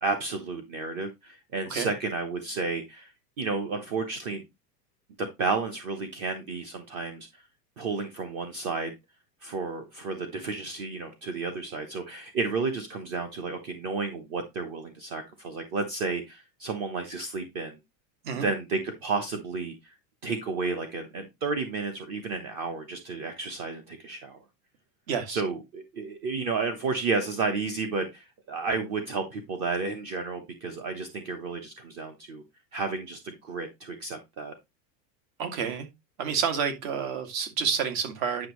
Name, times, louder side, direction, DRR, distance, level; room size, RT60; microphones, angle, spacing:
voice 1, 0.0-3.1 3.4-4.4 5.2-7.4 7.8-8.9 9.4-17.8 18.3-19.9 20.2-24.4 25.3-32.4 32.7-34.5, right 4 dB, 30° right, 1.0 m, -32 dB
voice 2, 25.1-25.4 35.4-35.9 36.2-38.5, right 6 dB, 50° right, 2.4 m, -29 dB
10.0 x 6.3 x 3.1 m
supercardioid pair, 180°, 50 cm